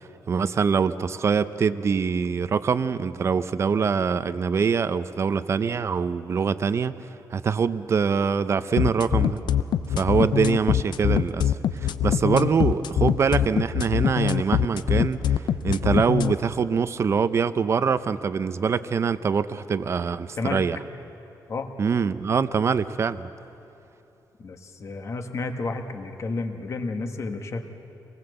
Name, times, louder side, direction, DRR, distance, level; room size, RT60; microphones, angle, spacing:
voice 1, 0.0-9.4 10.0-20.8 21.8-23.3, right 6 dB, 35° right, 13 dB, 0.6 m, -24 dB
sound 1, 8.8-16.3, left 10 dB, 80° left, 0.7 m, -23 dB
voice 2, 24.4-27.6, left 3 dB, 40° left, 6 dB, 1.5 m, -31 dB
25.5 x 19.5 x 7.9 m, 2.9 s
wide cardioid pair, 165°, 8 cm